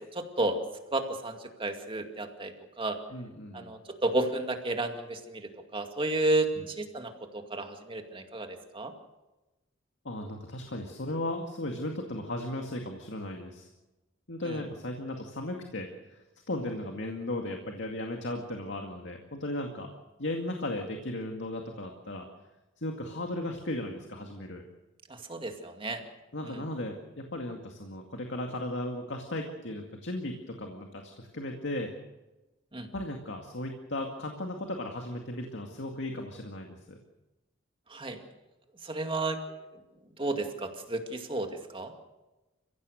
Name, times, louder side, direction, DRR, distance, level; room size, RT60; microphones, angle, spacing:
voice 1, 0.1-0.6 0.9-3.0 3.5-8.9 14.5-14.6 25.1-26.0 26.4-26.6 32.7-32.9 37.9-38.2 38.8-39.4 40.2-41.9, right 2 dB, 25° right, 5 dB, 2.3 m, -32 dB
voice 2, 3.1-3.7 6.6-6.7 10.0-13.7 14.3-19.9 20.2-22.2 22.8-24.6 26.3-31.9 32.9-37.0, left 1 dB, 65° left, 3 dB, 2.2 m, -36 dB
29.5 x 16.0 x 6.5 m, 1.1 s
head